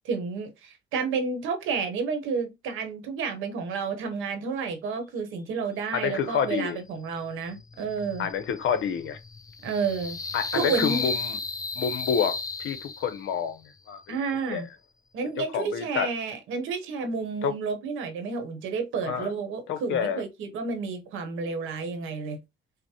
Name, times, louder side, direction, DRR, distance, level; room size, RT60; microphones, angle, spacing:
voice 1, 0.0-8.3 9.6-10.2 10.5-11.0 14.1-14.7 15.1-22.4, right 5 dB, 90° right, 1.0 m, -30 dB
voice 2, 5.9-6.8 8.2-9.2 10.3-11.4 11.7-14.2 14.5-14.7 15.4-16.1 17.4-17.6 19.0-19.3 19.7-20.2, left 7 dB, 75° left, 0.7 m, -28 dB
sound 1, 7.4-13.4, left 3 dB, 20° left, 0.3 m, -34 dB
5.0 x 2.1 x 2.9 m
cardioid pair, 90°, 20 cm